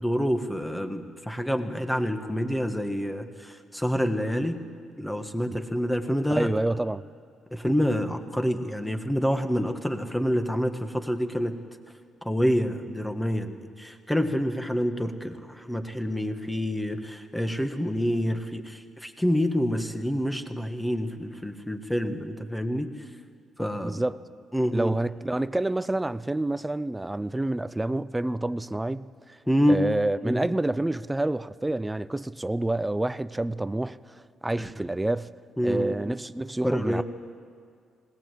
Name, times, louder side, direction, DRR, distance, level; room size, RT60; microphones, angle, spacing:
voice 1, 0.0-4.6 5.0-6.5 7.5-11.6 12.2-22.9 23.6-24.0 24.5-24.9 29.5-29.9 30.2-30.5 34.6-34.7 35.6-35.9 36.6-37.0, equal, 5° left, 1.6 m, -27 dB
voice 2, 6.3-7.0 23.8-24.2 24.7-29.4 29.7-35.3 35.6-37.0, right 2 dB, 10° right, 0.5 m, -28 dB
20.5 x 18.0 x 7.7 m
cardioid pair, 90°, 0 cm